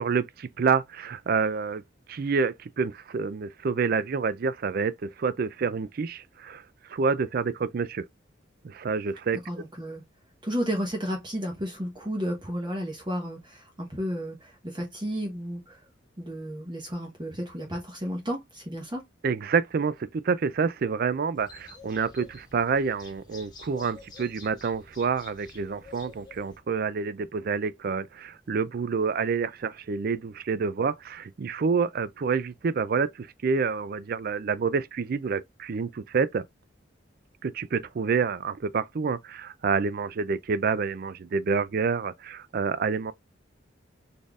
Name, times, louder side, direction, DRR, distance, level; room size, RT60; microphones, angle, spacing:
voice 1, 0.0-1.8 2.1-6.6 6.9-8.0 8.6-9.4 19.2-36.4 37.4-43.1, right 5 dB, 50° right, 0.4 m, -28 dB
voice 2, 9.5-10.0 10.4-15.9 16.2-19.0, equal, 25° right, 1.0 m, -32 dB
sound 1, 21.3-26.6, left 3 dB, 20° left, 1.2 m, -49 dB
4.2 x 3.4 x 2.4 m
head